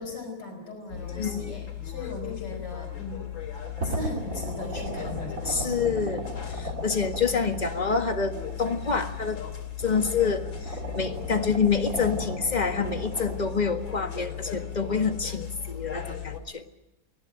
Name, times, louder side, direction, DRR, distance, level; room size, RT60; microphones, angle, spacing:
voice 1, 0.0-3.3 3.8-5.9, left 2 dB, 55° left, 2 dB, 5.5 m, -38 dB
sound 1, 0.9-16.4, left 11 dB, 80° left, 3.5 m, -37 dB
voice 2, 1.1-1.6 5.4-6.2 6.5-9.4 9.8-16.6, left 5 dB, 25° left, 6 dB, 1.6 m, -27 dB
sound 2, 3.3-9.5 9.8-13.4, right 1 dB, 45° right, 2.6 m, -37 dB
24.5 x 17.5 x 9.2 m, 0.92 s
omnidirectional pair, 2.1 m